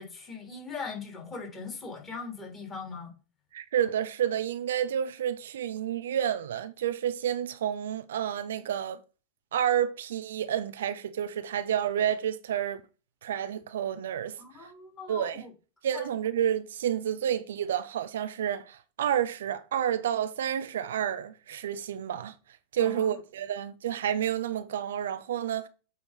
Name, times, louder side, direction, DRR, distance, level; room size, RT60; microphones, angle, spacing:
voice 1, 0.0-3.1 14.4-15.5 15.9-16.1 22.8-23.2, left 4 dB, 25° left, 3.2 m, -40 dB
voice 2, 3.5-9.0 9.5-12.8 13.2-14.4 15.1-15.4 15.8-22.3 22.7-25.7, right 10 dB, 75° right, 0.6 m, -30 dB
8.4 x 2.9 x 5.0 m
hypercardioid pair, 90°, 0 cm